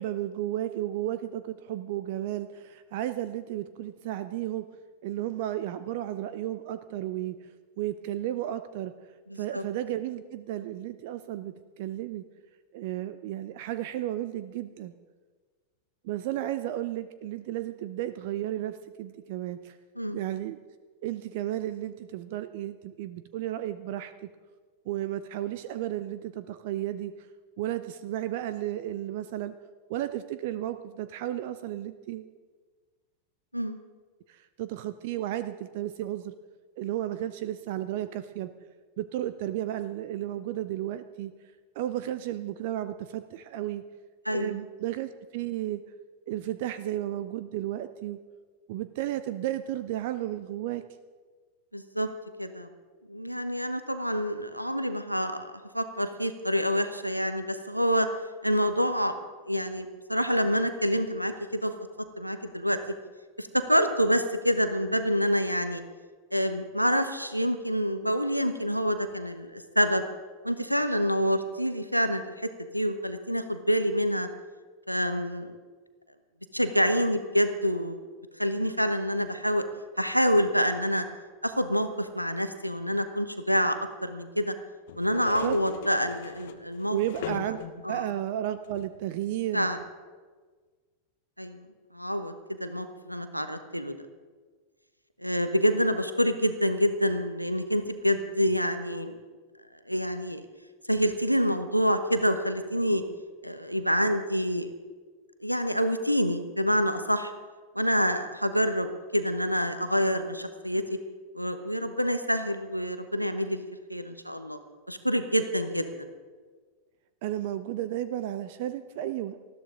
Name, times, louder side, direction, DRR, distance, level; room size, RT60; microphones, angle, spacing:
voice 1, 0.0-4.7 5.0-7.5 7.8-8.9 9.4-12.2 12.7-14.9 16.0-19.8 20.1-20.6 21.0-24.3 24.9-27.1 27.6-29.6 29.9-32.3 34.3-36.3 36.8-38.5 39.0-41.3 41.8-43.8 44.3-45.8 46.3-48.2 48.7-50.8 85.4-85.6 86.9-87.6 87.9-89.7 117.2-119.4, right 13 dB, 50° right, 12 dB, 0.6 m, -33 dB
voice 2, 9.3-9.6 20.0-20.2 33.5-33.8 44.2-44.6 51.7-52.1 52.4-52.7 53.1-58.1 58.4-59.1 59.5-61.7 62.2-62.8 63.4-65.8 66.3-70.0 70.4-74.3 74.9-75.6 76.5-78.1 78.4-79.6 80.0-81.0 81.4-84.5 85.0-87.0 87.4-87.5 87.8-88.0 89.5-89.8 91.4-91.7 91.9-92.3 92.6-93.9 95.2-99.2 99.9-100.4 100.9-103.0 103.4-104.7 105.4-107.3 107.7-110.8 111.3-114.6 114.9-116.1, equal, 90° right, 9 dB, 1.1 m, -27 dB
sound 1, 84.9-88.0 88.6-89.0 89.7-89.9, left 9 dB, 55° left, 1.0 m, -40 dB
19.5 x 13.5 x 3.8 m, 1.4 s
figure-of-eight pair, 90°, 0 cm